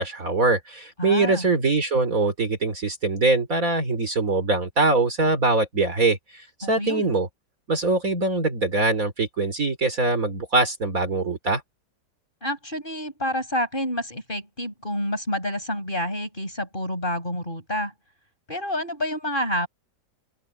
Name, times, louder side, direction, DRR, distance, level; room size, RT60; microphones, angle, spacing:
voice 1, 0.0-7.3 7.7-11.6, right 3 dB, 50° right, 3.5 m, -23 dB
voice 2, 1.0-1.5 6.6-7.1 12.4-17.9 18.5-19.7, left 1 dB, 30° left, 6.9 m, -28 dB
open air
omnidirectional pair, 1.9 m